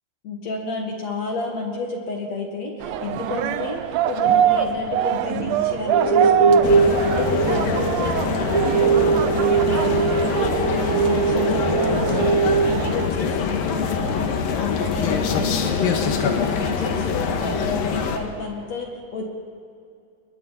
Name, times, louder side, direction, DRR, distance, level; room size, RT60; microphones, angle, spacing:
voice 1, 0.2-10.8 11.0-14.3 14.5-19.2, left 3 dB, 55° left, 1 dB, 3.0 m, -30 dB
sound 1, 2.8-13.1, right 10 dB, 75° right, 1.6 m, -25 dB
sound 2, 5.9-12.6, right 5 dB, 15° left, 4.9 m, -21 dB
sound 3, 6.6-18.2, left 6 dB, 85° left, 3.2 m, -24 dB
30.0 x 21.5 x 4.2 m, 2.5 s
omnidirectional pair, 4.0 m